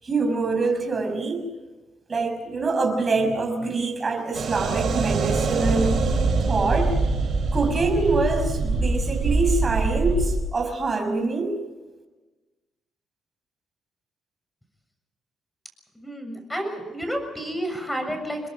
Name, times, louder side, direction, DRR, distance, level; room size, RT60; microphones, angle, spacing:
voice 1, 0.0-1.5 2.1-6.0 6.4-6.9 7.5-11.6, right 3 dB, 35° right, 5 dB, 5.9 m, -25 dB
sound 1, 4.3-10.4, right 3 dB, 55° right, 6.7 m, -24 dB
voice 2, 16.0-18.4, equal, 10° left, 6 dB, 7.0 m, -30 dB
29.0 x 21.5 x 5.1 m, 1.2 s
cardioid pair, 90°, 0 cm